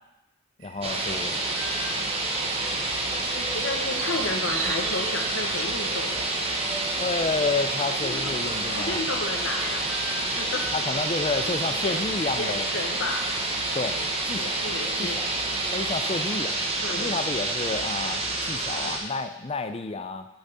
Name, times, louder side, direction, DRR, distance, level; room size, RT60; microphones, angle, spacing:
voice 1, 0.6-1.4 7.0-9.0 10.7-12.7 13.7-14.0 14.2-14.7 15.0-15.3 15.7-16.6 16.9-20.3, left 3 dB, 25° left, 9 dB, 0.4 m, -30 dB
sound 1, 0.6-14.4, right 6 dB, 60° right, 0.7 m, -43 dB
sound 2, 0.8-10.8 11.5-11.8 13.8-14.1 14.9-15.5 16.0-16.3 17.1-17.6 18.1-19.1, equal, 5° right, 1.1 m, -45 dB
sound 3, 0.8-19.0, right 2 dB, 25° right, 0.9 m, -28 dB
voice 2, 3.3-6.3 8.0-9.9 10.3-10.7 11.1-12.0 12.3-13.2 14.4-15.2 16.8-17.2, left 2 dB, 60° left, 2 dB, 1.2 m, -33 dB
6.3 x 5.8 x 6.7 m, 0.97 s
head